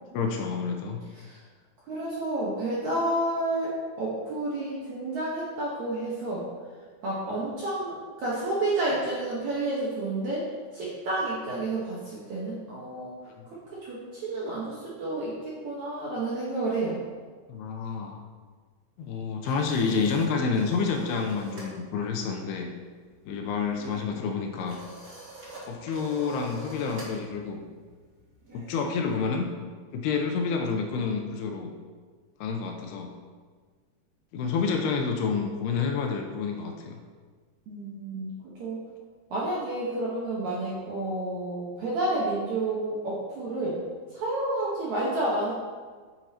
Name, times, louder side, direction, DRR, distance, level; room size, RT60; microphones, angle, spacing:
voice 1, 0.1-1.0 13.3-13.5 17.5-18.2 19.0-22.7 23.3-24.8 25.7-27.6 28.5-29.5 29.9-31.7 32.4-33.1 34.3-37.0, left 5 dB, 80° left, 2 dB, 2.7 m, -29 dB
voice 2, 1.9-6.5 7.0-10.5 10.7-13.1 13.7-17.0 37.7-38.3 38.6-38.8 39.3-43.8 44.1-45.5, right 2 dB, 65° right, -6 dB, 1.9 m, -30 dB
sound 1, 19.1-21.8 22.0-22.3 22.6-29.3, right 1 dB, 40° right, 1.3 m, -45 dB
9.1 x 9.1 x 2.9 m, 1.5 s
omnidirectional pair, 5.0 m